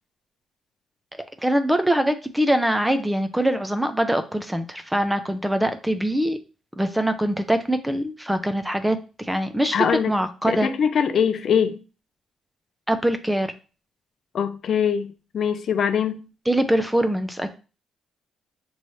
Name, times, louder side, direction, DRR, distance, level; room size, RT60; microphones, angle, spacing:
voice 1, 1.4-6.4 6.8-9.8 10.1-10.7 12.9-13.5 16.5-17.5, right 1 dB, 5° right, 0.5 m, -23 dB
voice 2, 9.7-10.1 10.5-11.8 14.3-16.2, left 7 dB, 60° left, 0.4 m, -22 dB
6.0 x 3.1 x 2.7 m
cardioid pair, 90°, 0 cm